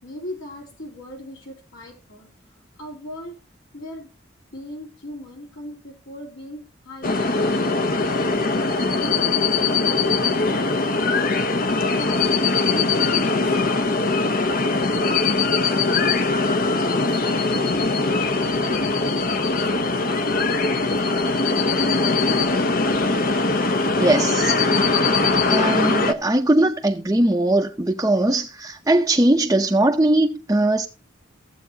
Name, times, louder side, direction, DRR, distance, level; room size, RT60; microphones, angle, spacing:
voice 1, 0.0-2.3 2.8-3.4 3.7-4.1 4.5-7.9 8.5-14.0 14.4-18.7 18.9-20.1 20.8-21.1, equal, 75° left, 3.4 m, -39 dB
sound 1, 7.0-26.1, left 3 dB, 50° left, 0.9 m, -21 dB
voice 2, 24.0-24.9 25.5-30.9, right 1 dB, 15° right, 0.7 m, -20 dB
15.0 x 8.1 x 2.8 m
head